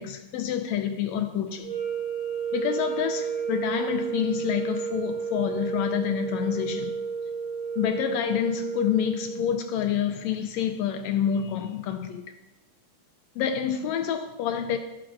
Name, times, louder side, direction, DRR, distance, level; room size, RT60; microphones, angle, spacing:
voice 1, 0.0-1.7 2.5-7.0 7.8-12.3 13.4-14.8, left 9 dB, 80° left, 1.6 m, -28 dB
sound 1, 1.6-9.8, right 6 dB, 25° left, 1.1 m, -32 dB
12.5 x 7.8 x 2.5 m
omnidirectional pair, 3.5 m